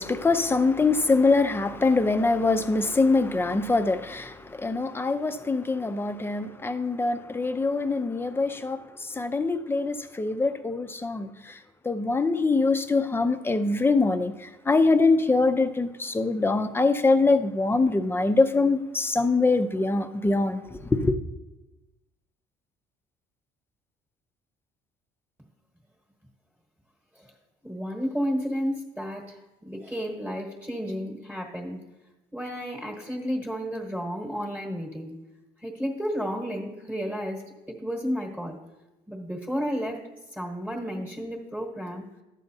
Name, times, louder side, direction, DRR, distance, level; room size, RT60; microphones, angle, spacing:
voice 1, 0.0-11.6 11.8-21.2, left 3 dB, 15° left, 0.5 m, -24 dB
voice 2, 27.6-31.8 32.3-35.1 35.6-37.4 37.7-38.6 39.1-40.0 40.3-42.0, equal, 10° right, 1.2 m, -32 dB
12.0 x 7.7 x 2.7 m
cardioid pair, 110°, 17 cm